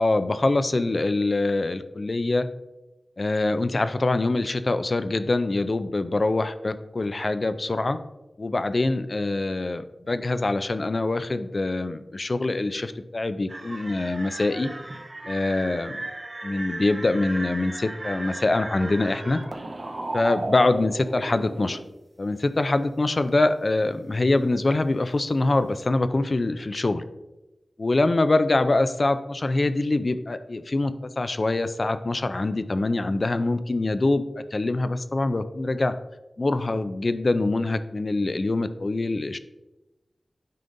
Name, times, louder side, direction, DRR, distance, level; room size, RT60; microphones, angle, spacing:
voice 1, 0.0-2.5 3.2-8.0 8.4-14.7 15.3-16.0 16.4-19.4 20.1-21.8 22.2-27.0 27.8-34.2 34.5-35.9 36.4-39.4, left 2 dB, 50° left, 11 dB, 0.4 m, -24 dB
sound 1, 13.5-21.8, right 2 dB, 50° right, 0.8 m, -35 dB
9.3 x 5.2 x 2.6 m, 1.0 s
wide cardioid pair, 70°, 0 cm